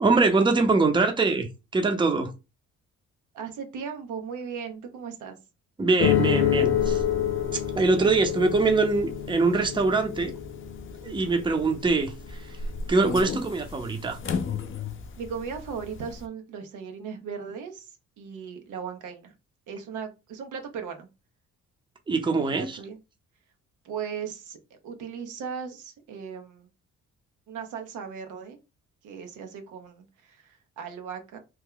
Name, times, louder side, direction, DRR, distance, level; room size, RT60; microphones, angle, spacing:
voice 1, 0.0-2.3 5.8-7.0 7.5-10.3 11.0-12.5 12.9-14.2 22.1-22.7, right 3 dB, 15° right, 0.6 m, -23 dB
voice 2, 3.3-5.4 11.0-11.3 15.2-19.3 19.7-21.1 22.4-23.0 23.8-26.7 27.5-28.6 29.0-31.4, right 6 dB, 85° right, 0.8 m, -37 dB
sound 1, 6.0-15.3 15.5-16.1, left 9 dB, 40° left, 0.6 m, -28 dB
3.0 x 2.1 x 3.7 m
cardioid pair, 90°, 30 cm